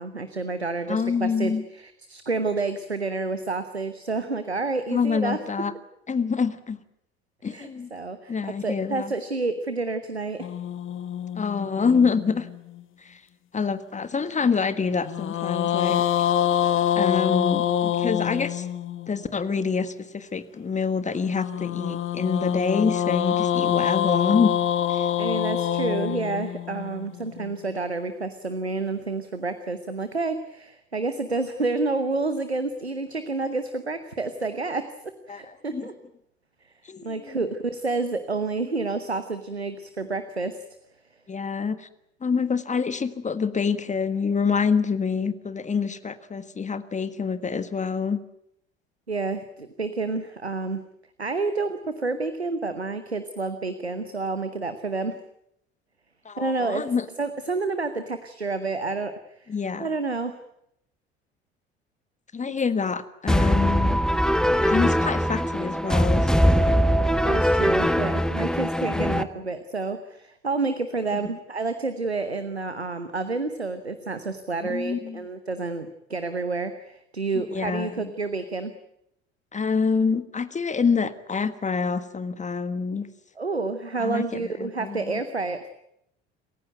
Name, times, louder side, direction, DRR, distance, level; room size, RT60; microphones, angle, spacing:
voice 1, 0.0-5.4 7.5-10.5 25.2-34.9 35.3-35.9 37.0-40.6 49.1-50.8 51.2-55.2 56.4-56.8 57.2-59.5 59.8-60.4 67.2-78.7 83.4-85.7, right 3 dB, 90° right, 10 dB, 1.1 m, -29 dB
voice 2, 0.9-1.6 4.9-5.7 6.1-6.8 7.4-7.9 8.3-9.1 11.3-12.5 13.0-13.2 13.5-16.0 16.9-18.7 19.1-24.6 24.9-25.1 35.3-35.9 36.9-37.5 41.3-41.9 42.2-48.2 56.2-57.1 59.5-59.9 62.3-64.0 64.6-66.8 68.9-69.1 74.7-75.2 77.3-78.1 79.5-83.1 84.0-85.2, left 5 dB, 25° left, 12 dB, 1.6 m, -26 dB
sound 1, 10.4-12.8 15.0-19.2 21.3-27.5, left 10 dB, 40° left, 1.4 m, -26 dB
sound 2, 63.3-69.2, equal, ahead, 1.1 m, -21 dB
28.0 x 15.5 x 9.3 m, 0.77 s
figure-of-eight pair, 60°, 31 cm